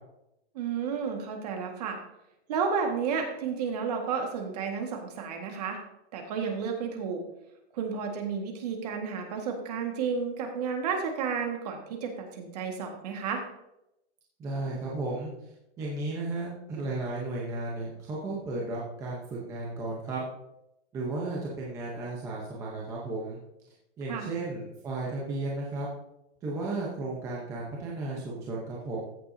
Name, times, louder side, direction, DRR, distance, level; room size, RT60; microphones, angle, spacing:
voice 1, 0.5-2.0 2.5-5.8 6.1-7.2 7.7-13.4 24.1-24.3, right 6 dB, 35° right, 3 dB, 1.7 m, -32 dB
voice 2, 14.4-20.3 20.9-23.4 24.0-25.9 26.4-29.0, right 2 dB, 10° right, -4 dB, 0.8 m, -34 dB
15.0 x 7.6 x 2.7 m, 0.85 s
hypercardioid pair, 175°, 34 cm